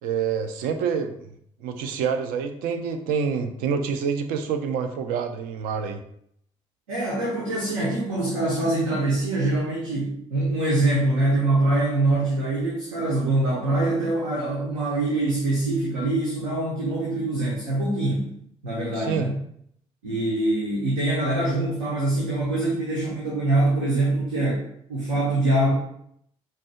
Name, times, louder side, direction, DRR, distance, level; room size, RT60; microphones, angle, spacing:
voice 1, 0.0-1.3 1.6-6.0 19.0-19.3, right 6 dB, 60° right, 7 dB, 0.6 m, -27 dB
voice 2, 6.9-18.3 18.6-19.3 20.0-24.6 24.9-25.7, right 2 dB, 75° right, -5 dB, 1.1 m, -24 dB
4.9 x 4.5 x 2.3 m, 0.71 s
figure-of-eight pair, 50°, 17 cm